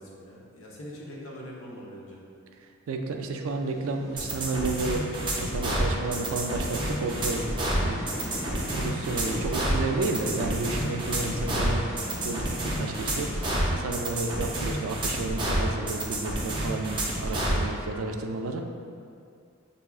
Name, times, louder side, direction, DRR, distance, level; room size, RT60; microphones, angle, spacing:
voice 1, 0.0-2.2, equal, 90° left, -4 dB, 0.8 m, -43 dB
voice 2, 2.9-8.0 8.3-11.8 12.2-18.6, right 3 dB, 85° right, 4 dB, 0.4 m, -32 dB
sound 1, 3.6-13.7, left 1 dB, 75° left, 1.1 m, -40 dB
sound 2, 4.2-17.6, right 1 dB, 25° right, 0.6 m, -29 dB
sound 3, 6.2-13.3, left 2 dB, 40° left, 0.4 m, -45 dB
5.9 x 2.7 x 2.3 m, 2.3 s
head